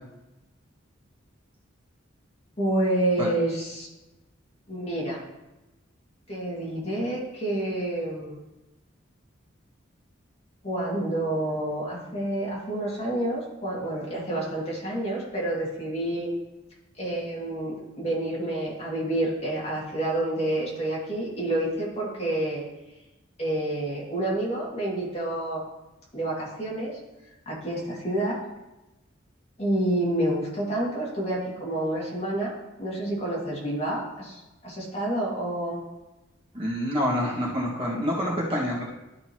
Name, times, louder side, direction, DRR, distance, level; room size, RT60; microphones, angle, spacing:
voice 1, 2.6-3.9 4.7-5.2 6.3-8.4 10.6-16.3 17.0-22.6 23.4-25.6 26.1-27.0 27.5-28.4 29.6-32.5 32.8-35.8, right 1 dB, 35° left, -5 dB, 2.4 m, -28 dB
voice 2, 36.5-38.8, equal, 30° right, -5 dB, 1.8 m, -27 dB
12.5 x 5.5 x 3.0 m, 1.0 s
head